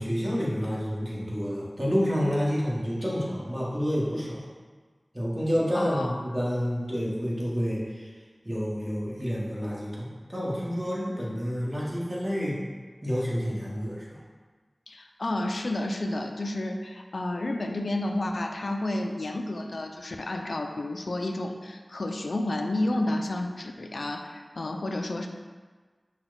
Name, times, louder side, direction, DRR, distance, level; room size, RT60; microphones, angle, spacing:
voice 1, 0.0-4.4 5.1-8.1 8.4-12.6 13.0-14.2, equal, 25° right, -6 dB, 1.3 m, -29 dB
voice 2, 5.7-6.2 14.9-25.3, left 1 dB, 80° left, 4 dB, 0.3 m, -31 dB
5.8 x 2.2 x 3.9 m, 1.5 s
wide cardioid pair, 50°, 0 cm